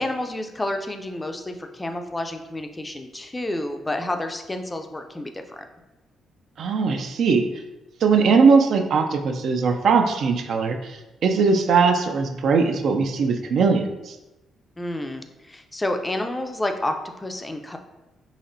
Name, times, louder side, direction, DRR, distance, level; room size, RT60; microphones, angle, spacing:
voice 1, 0.0-5.6 14.8-17.8, left 1 dB, 15° left, 6 dB, 0.4 m, -30 dB
voice 2, 6.6-7.4 8.0-14.2, right 5 dB, 65° right, 5 dB, 0.3 m, -20 dB
4.1 x 2.9 x 2.5 m, 1.0 s
cardioid pair, 90°, 0 cm